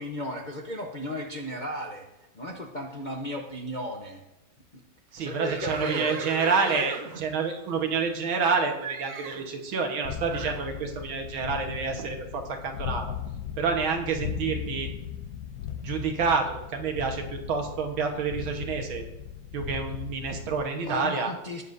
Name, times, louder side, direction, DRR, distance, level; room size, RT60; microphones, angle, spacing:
voice 1, 0.0-2.0 2.3-4.2 4.7-4.8 5.2-6.3 6.7-6.9 20.7-21.6, left 1 dB, 40° left, 1 dB, 0.6 m, -35 dB
voice 2, 5.1-13.1 13.6-14.9 15.8-19.1 19.5-21.3, right 5 dB, 85° right, 4 dB, 2.1 m, -28 dB
Livestock farm animals working animals, 5.4-8.5 8.8-9.5 10.3-10.7, right 5 dB, 55° right, 0.9 m, -37 dB
sound 1, 10.0-20.7, left 9 dB, 75° left, 0.9 m, -37 dB
18.5 x 7.3 x 2.7 m, 0.97 s
omnidirectional pair, 2.2 m